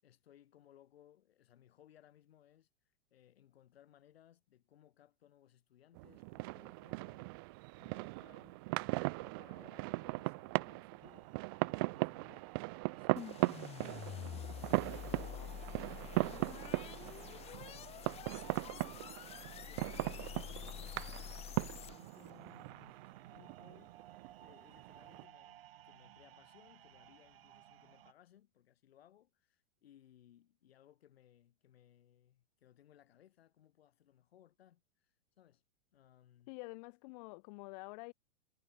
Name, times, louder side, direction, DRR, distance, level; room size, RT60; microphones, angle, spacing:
voice 1, 0.0-2.7 3.1-7.4 7.8-11.3 11.6-12.6 12.9-17.9 18.7-19.3 19.6-25.6 25.8-35.6 35.9-36.5, left 11 dB, 80° left, 6.5 m, -65 dB
sound 1, 5.9-25.2, right 27 dB, 25° right, 0.3 m, -39 dB
sound 2, 11.0-28.1, right 12 dB, 70° right, 6.8 m, -59 dB
sound 3, 13.2-22.3, left 11 dB, 20° left, 2.1 m, -47 dB
voice 2, 36.5-38.1, left 29 dB, 40° left, 3.0 m, -48 dB
supercardioid pair, 160°, 30 cm